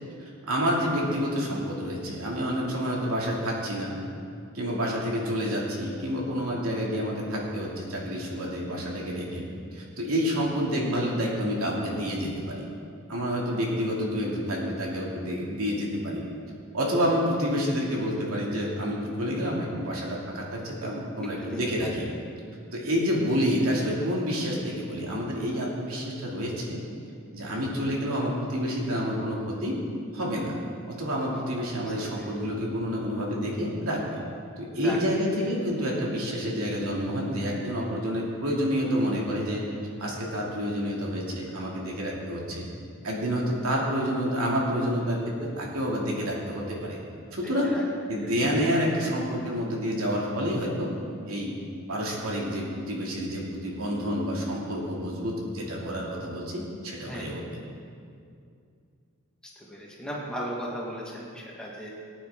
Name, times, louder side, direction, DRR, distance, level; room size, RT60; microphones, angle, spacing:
voice 1, 0.2-4.0 4.5-12.6 13.1-16.2 16.7-22.1 22.7-26.8 27.3-29.7 30.1-30.6 30.9-34.1 34.6-39.6 40.0-42.7 43.0-47.0 47.3-47.8 48.1-50.9 51.3-51.6 51.9-57.4, equal, 85° right, -3 dB, 2.7 m, -28 dB
voice 2, 21.4-21.9 31.3-31.4 31.8-32.3 34.8-35.0 37.8-37.9 47.4-47.8 57.1-57.4 59.6-61.9, equal, 5° left, -5 dB, 1.8 m, -37 dB
20.0 x 9.3 x 3.8 m, 2.3 s
head